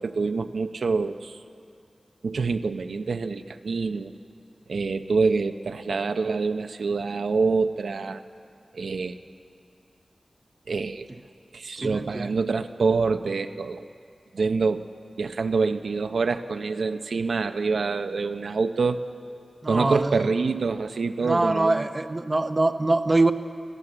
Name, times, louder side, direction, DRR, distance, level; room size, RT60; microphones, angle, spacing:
voice 1, 0.0-1.4 2.2-4.1 4.7-8.2 8.7-9.2 10.7-11.1 11.5-13.8 14.3-14.8 15.2-19.0 19.7-21.9, right 4 dB, 90° right, 8 dB, 0.6 m, -26 dB
voice 2, 11.8-12.3 19.6-20.3 21.2-23.3, right 2 dB, 30° right, 9 dB, 0.7 m, -23 dB
22.5 x 15.0 x 7.7 m, 2.4 s
wide cardioid pair, 95°, 0 cm